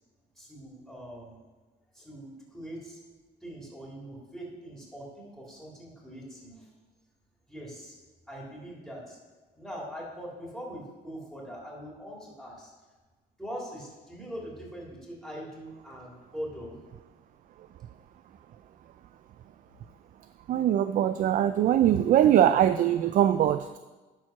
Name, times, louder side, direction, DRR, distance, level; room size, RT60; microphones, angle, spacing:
voice 1, 0.4-1.4 1.9-3.0 3.4-6.7 7.5-7.9 8.3-9.2 9.5-12.7 13.4-16.8, equal, ahead, -4 dB, 3.1 m, -42 dB
voice 2, 20.5-23.8, right 11 dB, 50° right, 11 dB, 0.4 m, -22 dB
11.0 x 4.5 x 6.0 m, 1.3 s
cardioid pair, 110°, 17 cm